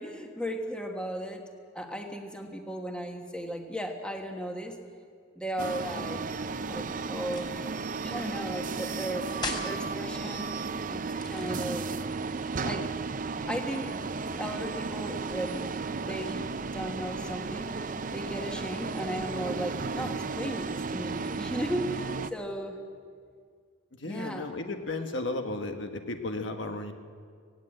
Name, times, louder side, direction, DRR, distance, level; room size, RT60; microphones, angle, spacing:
voice 1, 0.0-1.4 1.7-4.8 5.4-6.2 6.7-7.5 8.0-9.3 9.6-10.5 10.9-11.9 12.6-12.9 13.5-14.0 14.2-15.7 16.0-17.7 18.1-22.8 24.0-24.5, equal, 5° left, 3 dB, 1.4 m, -36 dB
sound 1, 5.6-22.3, right 4 dB, 40° right, 0.5 m, -34 dB
sound 2, 7.2-7.6 9.3-9.8 11.1-12.0, left 3 dB, 25° left, 3.1 m, -37 dB
voice 2, 24.0-26.9, left 2 dB, 65° left, 5 dB, 1.4 m, -34 dB
18.0 x 17.0 x 8.9 m, 2.1 s
head